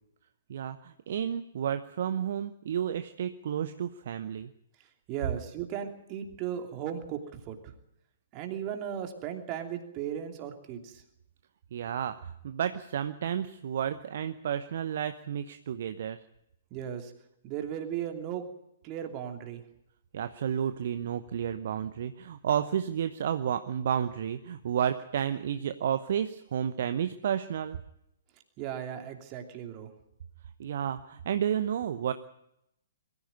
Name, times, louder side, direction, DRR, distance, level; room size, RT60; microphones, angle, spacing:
voice 1, 0.5-4.5 11.7-16.2 20.1-27.8 30.6-32.1, right 9 dB, 50° right, 11 dB, 0.9 m, -31 dB
voice 2, 5.1-7.7 8.3-11.0 16.7-17.1 17.4-18.4 18.8-19.6 28.6-29.9, right 9 dB, 25° right, 5 dB, 2.8 m, -36 dB
22.5 x 15.0 x 9.3 m, 0.82 s
figure-of-eight pair, 120°, 0 cm